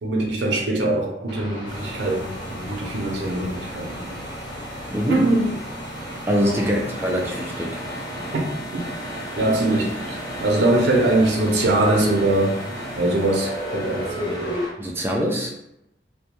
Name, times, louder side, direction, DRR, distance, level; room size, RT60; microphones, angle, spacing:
voice 1, 0.0-4.2 5.1-5.5 6.3-6.6 8.7-8.8 9.4-12.6 12.9-14.6, right 2 dB, 80° right, 0 dB, 0.6 m, -22 dB
sound 1, 1.3-8.4 8.8-14.7, left 1 dB, 20° left, 0.7 m, -38 dB
sound 2, 1.7-14.7, equal, 80° left, 1.0 m, -34 dB
voice 2, 4.9-5.3 6.3-7.8 14.8-15.5, equal, 15° right, -1 dB, 0.3 m, -24 dB
2.2 x 2.2 x 2.9 m, 0.84 s
head